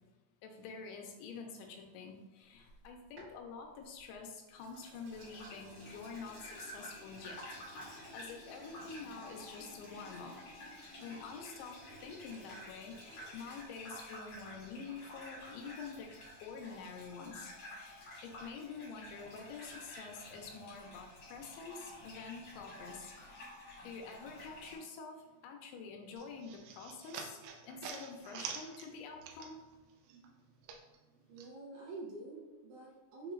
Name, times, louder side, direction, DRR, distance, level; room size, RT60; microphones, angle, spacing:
voice 1, 0.4-10.3 11.0-16.1 16.4-23.1 23.4-29.6, left 5 dB, 85° left, 2 dB, 2.5 m, -48 dB
sound 1, 2.6-4.2 4.6-16.3, right 1 dB, 55° right, 2.3 m, -58 dB
Gurgling / Bathtub (filling or washing), 5.1-24.8, left 1 dB, 70° left, 1.6 m, -51 dB
sound 2, 26.2-29.8 30.1-31.5, right 6 dB, 85° right, 2.7 m, -47 dB
voice 2, 31.3-33.3, right 3 dB, 70° right, -4 dB, 2.7 m, -47 dB
6.7 x 2.9 x 2.4 m, 1.2 s
omnidirectional pair, 4.7 m